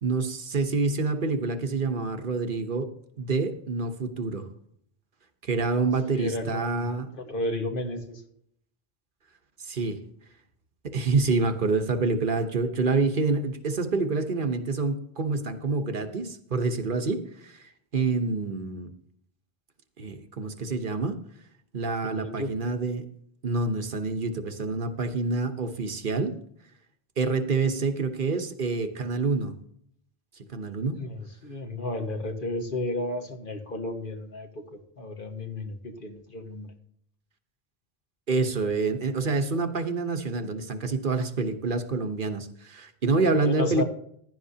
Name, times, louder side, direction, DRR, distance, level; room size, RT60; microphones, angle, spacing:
voice 1, 0.0-2.9 3.2-4.5 5.4-7.1 9.6-10.0 10.8-18.9 20.0-21.1 21.7-23.0 23.4-26.3 27.2-29.5 30.5-31.0 38.3-43.8, right 3 dB, 55° right, 7 dB, 1.1 m, -27 dB
voice 2, 6.1-6.9 7.1-8.2 22.0-22.6 30.9-36.7 43.4-43.8, left 2 dB, 55° left, 4 dB, 1.6 m, -33 dB
15.5 x 11.0 x 2.8 m, 0.68 s
omnidirectional pair, 1.0 m